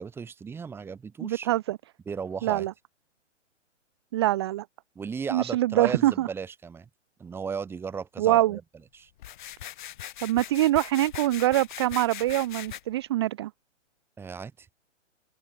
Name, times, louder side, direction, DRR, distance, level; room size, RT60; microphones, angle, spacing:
voice 1, 0.0-1.5 2.1-2.7 4.9-6.9 7.2-8.6 8.9-9.1 14.2-14.7, right 6 dB, 5° right, 1.0 m, -35 dB
voice 2, 1.2-1.8 2.4-2.7 4.1-4.6 5.3-6.3 8.2-8.6 10.2-13.5, right 15 dB, 20° right, 0.5 m, -24 dB
sound 1, 9.2-12.8, left 13 dB, 40° left, 1.1 m, -40 dB
open air
figure-of-eight pair, 125°, 37 cm